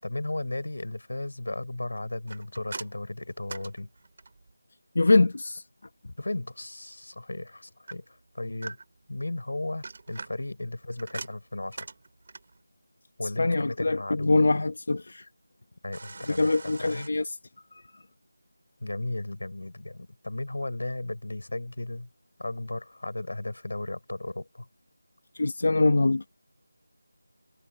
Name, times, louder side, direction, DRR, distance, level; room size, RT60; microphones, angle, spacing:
voice 1, 0.0-3.9 6.2-8.0 8.3-8.8 9.1-11.9 13.2-14.6 15.8-16.5 16.8-17.1 18.8-22.1 22.4-24.7, left 2 dB, 75° left, 7.8 m, -35 dB
sound 1, 2.3-4.5 7.9-9.1 9.6-12.6 15.9-17.1, right 3 dB, 35° right, 5.8 m, -43 dB
voice 2, 5.0-5.6 13.4-15.3 16.4-17.4 17.7-17.8 25.3-26.2, left 2 dB, 45° left, 2.2 m, -23 dB
figure-of-eight pair, 180°, 0 cm